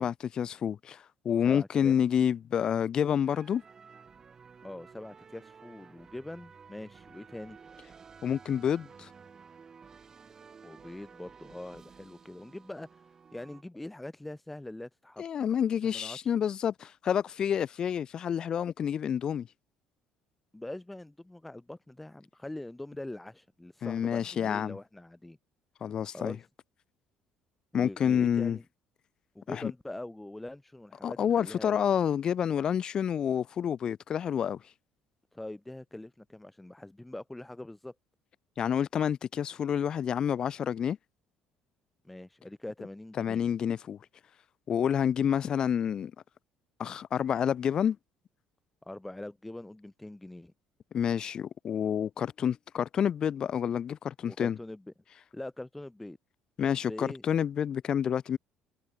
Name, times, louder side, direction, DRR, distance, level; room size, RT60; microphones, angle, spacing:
voice 1, 0.0-3.6 8.2-9.1 15.2-19.5 23.8-24.8 25.8-26.4 27.7-28.6 29.5-29.7 31.0-34.6 38.6-41.0 43.2-44.0 44.7-46.1 46.8-48.0 50.9-54.6 56.6-58.4, left 8 dB, 35° left, 1.4 m, -28 dB
voice 2, 1.5-2.0 4.6-7.6 10.6-12.9 13.3-15.2 15.8-16.2 20.5-25.4 26.1-26.4 27.7-28.6 29.3-31.8 35.3-37.9 42.0-43.5 48.8-50.5 54.3-54.9 55.3-56.2 56.7-57.2, left 1 dB, 5° left, 1.1 m, -43 dB
sound 1, 3.3-13.6, right 5 dB, 25° right, 2.4 m, -53 dB
cardioid pair, 160°, 2 cm